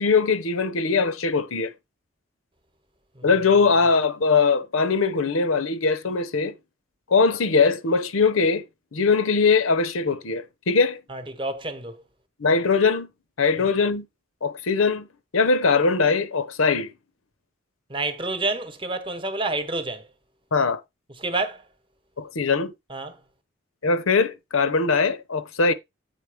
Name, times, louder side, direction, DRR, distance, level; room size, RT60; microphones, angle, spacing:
voice 1, 0.0-1.7 3.2-6.5 7.1-8.6 8.9-11.0 12.4-13.1 13.4-14.0 14.4-15.1 15.3-16.9 20.5-20.8 22.2-22.7 23.8-25.7, left 4 dB, 80° left, 0.8 m, -21 dB
voice 2, 11.1-12.0 13.6-13.7 17.9-20.0 21.2-21.6 22.9-23.2, right 2 dB, 25° right, 1.0 m, -29 dB
8.4 x 3.8 x 5.0 m
head